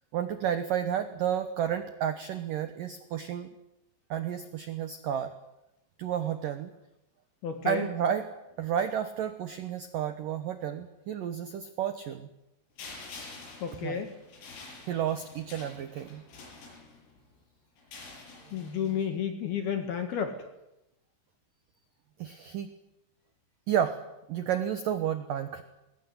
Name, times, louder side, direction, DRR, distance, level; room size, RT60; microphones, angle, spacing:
voice 1, 0.1-3.5 4.1-5.3 6.0-6.7 7.6-8.2 8.6-12.3 13.8-14.0 14.9-16.2 18.5-18.9 22.2-22.7 23.7-24.0 24.3-25.6, right 9 dB, 90° right, 9 dB, 1.9 m, -31 dB
voice 2, 7.4-7.9 13.6-14.2 18.5-20.5, left 8 dB, 60° left, 6 dB, 3.3 m, -31 dB
sound 1, 12.8-17.2 17.8-19.1, left 3 dB, 75° left, 8.9 m, -48 dB
22.5 x 19.0 x 9.7 m, 0.91 s
omnidirectional pair, 5.8 m